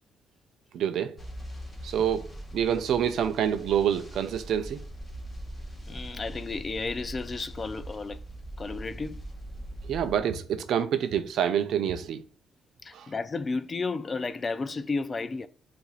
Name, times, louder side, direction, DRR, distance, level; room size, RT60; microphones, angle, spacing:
voice 1, 0.7-1.2 1.8-4.8 9.8-12.2 12.9-13.1, right 9 dB, 70° right, 0.5 m, -27 dB
sound 1, 1.2-10.2, right 1 dB, 20° left, 1.4 m, -41 dB
voice 2, 5.9-8.2 8.6-9.2 12.8-15.5, left 3 dB, 35° left, 0.4 m, -32 dB
7.1 x 2.5 x 2.4 m
cardioid pair, 90°, 0 cm